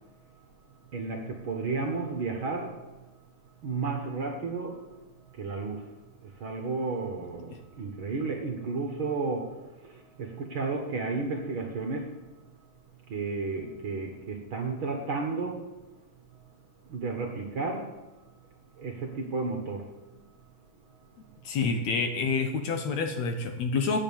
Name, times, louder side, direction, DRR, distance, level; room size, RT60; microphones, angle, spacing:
voice 1, 0.9-2.8 3.6-4.8 5.3-5.9 6.2-12.1 13.1-15.7 16.9-18.0 18.8-20.2, right 3 dB, 55° right, 2 dB, 1.6 m, -33 dB
voice 2, 21.4-24.0, left 4 dB, 65° left, 6 dB, 2.0 m, -28 dB
11.5 x 8.4 x 7.1 m, 1.1 s
omnidirectional pair, 3.7 m